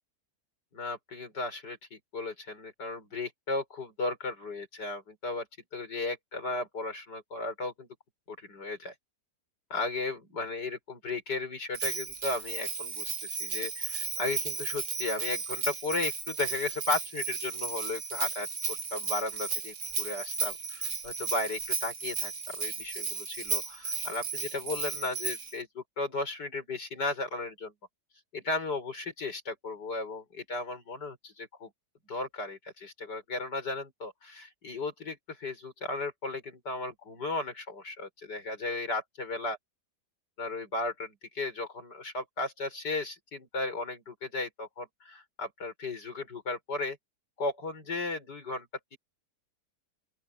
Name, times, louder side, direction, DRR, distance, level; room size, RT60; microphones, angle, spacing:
voice 1, 0.7-5.5 5.7-7.9 8.3-8.9 9.7-27.7 28.3-31.7 32.1-39.6 40.4-47.0 47.4-49.0, left 2 dB, 85° left, 6.5 m, -35 dB
Bell, 11.7-25.6, right 4 dB, 55° right, 2.4 m, -34 dB
open air
omnidirectional pair, 1.8 m